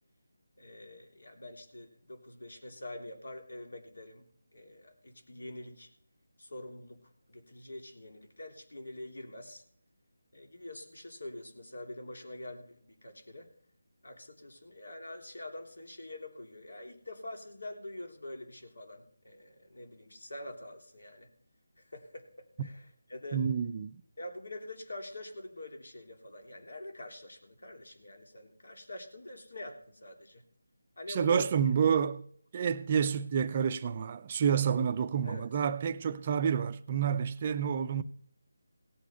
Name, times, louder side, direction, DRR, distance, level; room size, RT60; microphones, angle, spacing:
voice 1, 0.6-5.9 6.4-9.6 10.3-13.5 14.0-21.3 21.8-23.4 24.2-30.4 31.0-31.6 35.2-35.5, left 1 dB, 80° left, 3.4 m, -45 dB
voice 2, 23.3-24.0 31.1-32.3 32.5-38.0, right 7 dB, 25° right, 0.5 m, -29 dB
17.5 x 8.1 x 5.7 m
figure-of-eight pair, 170°, 0 cm